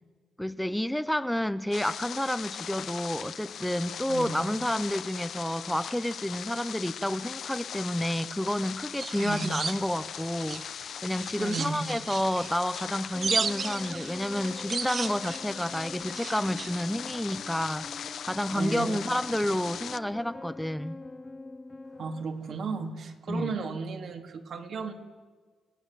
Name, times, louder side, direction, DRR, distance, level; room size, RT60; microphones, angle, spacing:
voice 1, 0.4-21.0 23.3-23.5, left 1 dB, 5° left, 0.7 m, -30 dB
sound 1, 1.7-20.0, left 8 dB, 65° left, 0.6 m, -39 dB
voice 2, 4.1-4.6 9.2-9.6 11.4-12.0 18.5-19.0 22.0-24.9, right 4 dB, 65° right, 2.8 m, -34 dB
sound 2, 9.0-10.8 11.2-16.9, right 5 dB, 45° right, 0.7 m, -35 dB
sound 3, 13.1-22.2, left 2 dB, 20° left, 1.0 m, -46 dB
29.5 x 18.5 x 7.5 m
cardioid pair, 100°, 0 cm